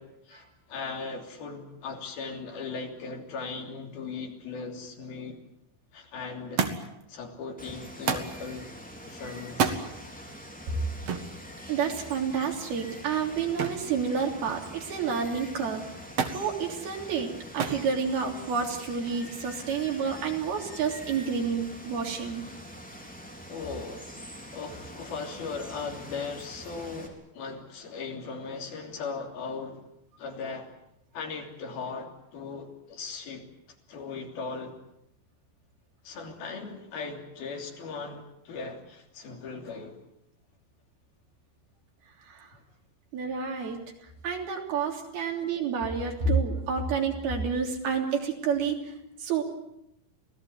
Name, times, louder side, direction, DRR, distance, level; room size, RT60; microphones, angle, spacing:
voice 1, 0.0-5.4 5.9-6.7 7.1-8.7 9.1-9.8 23.5-24.1 24.5-29.8 30.2-30.7 31.1-33.5 33.9-34.8 36.0-40.0 45.2-45.3, left 4 dB, 80° left, 3 dB, 5.0 m, -38 dB
Thump thud, 6.6-7.0 8.1-8.4 9.5-9.8 11.1-11.3 13.6-13.9 14.3-14.8 16.2-16.4 17.6-17.9 18.8-19.3 20.3-20.4, right 6 dB, 50° right, 2.4 m, -29 dB
Water, 7.6-27.1, equal, ahead, 3.3 m, -45 dB
voice 2, 11.7-15.8 16.3-22.4 42.2-42.5 43.1-49.4, right 6 dB, 90° right, 2 dB, 5.2 m, -29 dB
26.0 x 17.5 x 9.5 m, 0.81 s
omnidirectional pair, 4.3 m